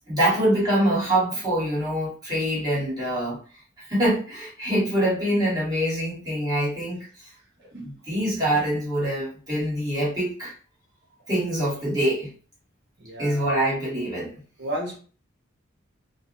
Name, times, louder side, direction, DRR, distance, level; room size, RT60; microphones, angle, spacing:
voice 1, 0.1-3.4 3.8-7.3 7.7-10.5 11.3-12.3 13.2-14.3, right 1 dB, 20° right, -8 dB, 1.3 m, -25 dB
voice 2, 13.0-13.6 14.6-15.0, right 1 dB, 55° right, 0 dB, 0.8 m, -33 dB
2.4 x 2.0 x 2.5 m, 0.40 s
head